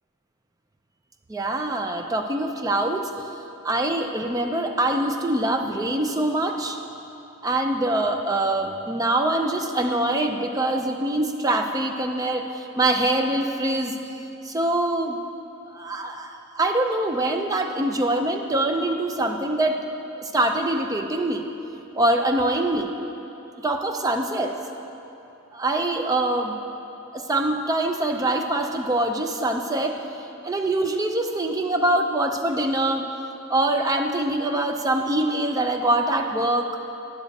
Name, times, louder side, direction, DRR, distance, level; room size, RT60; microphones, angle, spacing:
voice 1, 1.3-3.1 3.6-6.8 7.4-13.9 14.4-15.2 15.7-19.8 20.2-21.5 22.0-23.1 23.6-24.5 25.5-26.6 27.1-29.9 30.4-33.1 33.5-36.7, right 1 dB, 15° right, 4 dB, 0.4 m, -24 dB
10.0 x 6.6 x 4.0 m, 3.0 s
head